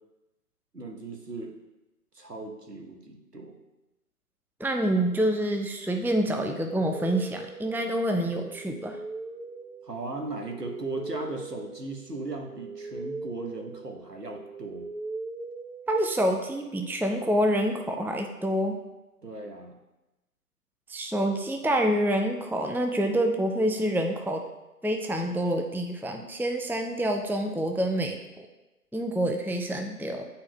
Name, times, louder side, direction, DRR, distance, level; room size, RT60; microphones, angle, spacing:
voice 1, 0.7-1.5 2.1-3.6 9.8-14.9 19.2-19.8, right 2 dB, 90° right, 2 dB, 1.2 m, -37 dB
voice 2, 4.6-9.0 15.9-18.8 20.9-24.4 24.8-28.5 28.9-30.3, right 1 dB, 5° right, 4 dB, 0.3 m, -27 dB
sound 1, 6.8-16.5, right 3 dB, 60° right, 0.5 m, -41 dB
9.6 x 4.3 x 2.3 m, 1.0 s
figure-of-eight pair, 175°, 47 cm